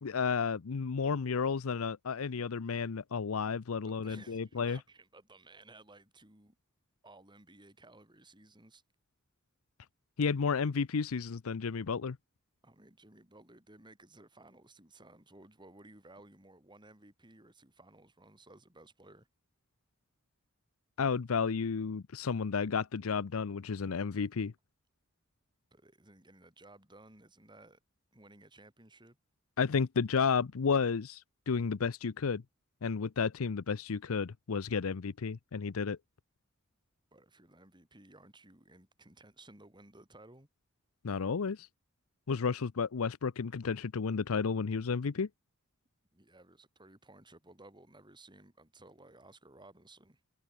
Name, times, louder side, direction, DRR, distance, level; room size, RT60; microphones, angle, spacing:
voice 1, 0.0-4.8 10.2-12.2 21.0-24.5 29.6-32.4 32.8-36.0 41.0-41.7 42.3-45.3, left 5 dB, 90° left, 0.6 m, -32 dB
voice 2, 3.9-6.5 7.0-8.8 12.6-19.3 25.7-27.8 28.1-29.2 37.1-40.5 46.1-50.2, right 2 dB, 20° right, 7.0 m, -57 dB
head